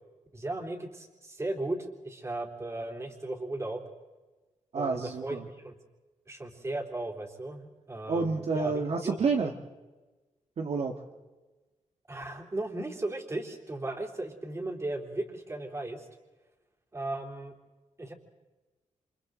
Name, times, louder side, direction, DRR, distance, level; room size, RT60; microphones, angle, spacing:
voice 1, 0.3-3.8 4.7-5.7 6.3-8.8 12.1-16.1 16.9-17.5 18.0-18.1, right 2 dB, 20° right, 2 dB, 3.3 m, -36 dB
voice 2, 4.7-5.4 8.1-9.5 10.6-11.0, right 4 dB, 55° right, 3 dB, 1.6 m, -29 dB
29.0 x 28.0 x 3.9 m, 1.2 s
wide cardioid pair, 140°, 13 cm